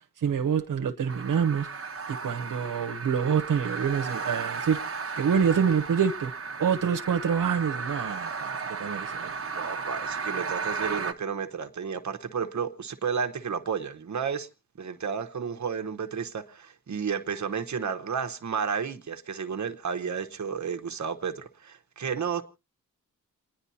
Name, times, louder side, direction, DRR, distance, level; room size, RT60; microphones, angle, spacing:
voice 1, 0.2-1.7 2.1-4.8 5.2-6.3 6.6-9.3, right 7 dB, 85° right, 0.9 m, -26 dB
sound 1, 1.1-11.1, right 5 dB, 45° right, 1.1 m, -35 dB
voice 2, 9.5-14.5 14.8-22.4, right 6 dB, 60° right, 1.1 m, -32 dB
29.0 x 10.5 x 2.8 m
wide cardioid pair, 100°, 32 cm